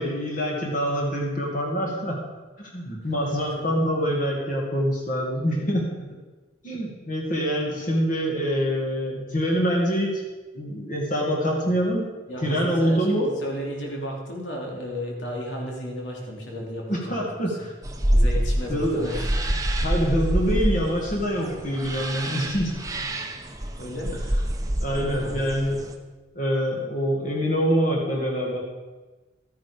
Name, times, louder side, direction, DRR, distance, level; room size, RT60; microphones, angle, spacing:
voice 1, 0.0-2.2 2.6-6.1 6.6-10.2 10.5-12.1 12.4-13.3 16.9-17.7 18.7-19.0 19.8-22.8 24.8-25.8 26.4-28.6, equal, 45° left, -2 dB, 2.3 m, -25 dB
voice 2, 3.0-3.5 12.3-17.7 18.1-19.9 23.8-24.2 24.9-25.6, equal, 80° left, -1 dB, 3.1 m, -34 dB
sound 1, 17.8-25.9, right 1 dB, 20° right, 0.9 m, -26 dB
13.5 x 9.7 x 5.2 m, 1.2 s
head